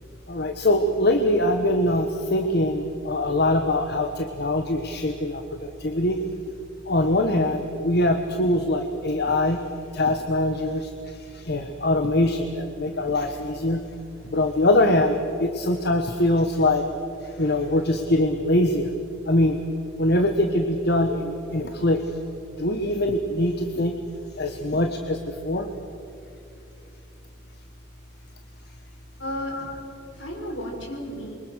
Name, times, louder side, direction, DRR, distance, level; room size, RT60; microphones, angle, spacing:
voice 1, 0.3-6.2 6.9-9.6 9.9-13.8 14.3-16.8 17.4-18.9 19.3-19.6 20.0-22.0 22.6-23.9 24.4-25.7 29.5-29.7, left 1 dB, 55° left, 6 dB, 1.3 m, -23 dB
voice 2, 17.4-17.9 29.2-31.4, equal, 70° left, 1 dB, 5.7 m, -35 dB
27.5 x 23.5 x 6.5 m, 2.8 s
head